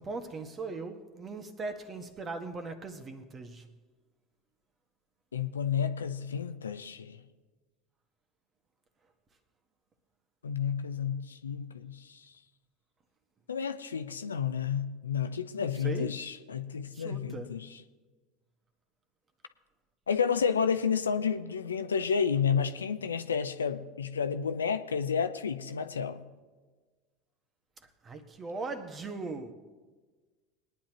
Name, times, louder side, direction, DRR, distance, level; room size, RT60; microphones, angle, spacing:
voice 1, 0.0-3.6 15.6-16.1 16.9-17.5 28.0-29.5, right 3 dB, 30° right, 1.5 m, -39 dB
voice 2, 5.3-7.2 10.4-12.2 13.5-17.8 20.1-26.2, left 7 dB, 85° left, 0.6 m, -31 dB
22.0 x 9.9 x 3.0 m
hypercardioid pair, 80°, 0 cm